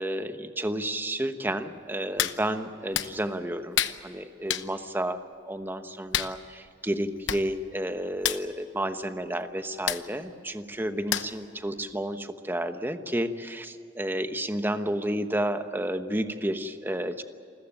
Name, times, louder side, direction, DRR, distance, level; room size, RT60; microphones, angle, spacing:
voice 1, 0.0-5.2 5.4-17.2, right 1 dB, 10° right, 8 dB, 1.1 m, -31 dB
Hands, 2.2-2.4 2.9-3.1 3.7-4.0 4.5-4.7 6.1-6.3 7.0-7.1 7.3-7.4 7.7-7.9 8.2-8.4 9.9-10.0 11.1-11.4 11.9-12.0, left 10 dB, 80° left, 0.9 m, -28 dB
28.5 x 14.5 x 9.0 m, 2.7 s
head